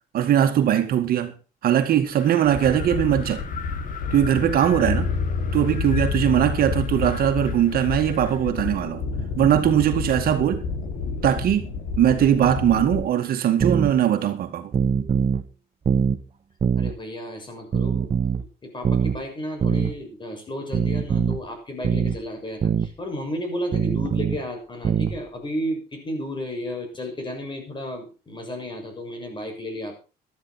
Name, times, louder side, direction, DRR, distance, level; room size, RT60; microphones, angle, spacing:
voice 1, 0.1-1.3 1.6-3.4 4.1-5.1 5.5-9.1 9.4-10.6 11.2-11.7 12.0-14.7, right 10 dB, 65° right, 2.1 m, -20 dB
Wind, 2.1-8.5, left 7 dB, 55° left, 2.1 m, -42 dB
sound 1, 2.4-13.0, left 5 dB, 80° left, 5.7 m, -29 dB
sound 2, 13.6-13.9 14.7-15.4 15.9-16.2 16.6-16.9 17.7-18.4 18.8-19.2 19.6-19.9 20.7-21.4 21.8-22.2 22.6-22.9 23.7-24.4 24.8-25.2, right 6 dB, 35° right, 1.2 m, -22 dB
voice 2, 16.8-18.3 18.6-29.9, equal, 30° left, 6.8 m, -33 dB
14.0 x 12.5 x 4.5 m
cardioid pair, 110°, 17 cm